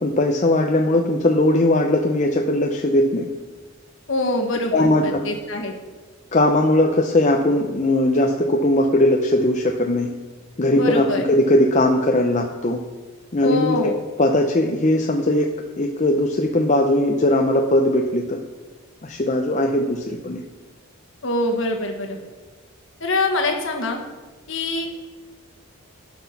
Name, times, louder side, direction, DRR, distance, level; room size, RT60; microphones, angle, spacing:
voice 1, 0.0-3.3 4.7-5.2 6.3-10.1 10.6-12.8 13.3-13.9 14.2-15.5 15.8-18.4 19.0-20.4, left 1 dB, 30° left, 2 dB, 0.6 m, -19 dB
voice 2, 4.1-5.7 10.7-11.2 13.4-14.0 21.2-22.2 23.0-24.0 24.5-25.0, left 2 dB, 55° left, 2 dB, 1.4 m, -24 dB
12.0 x 6.0 x 5.8 m, 1.3 s
head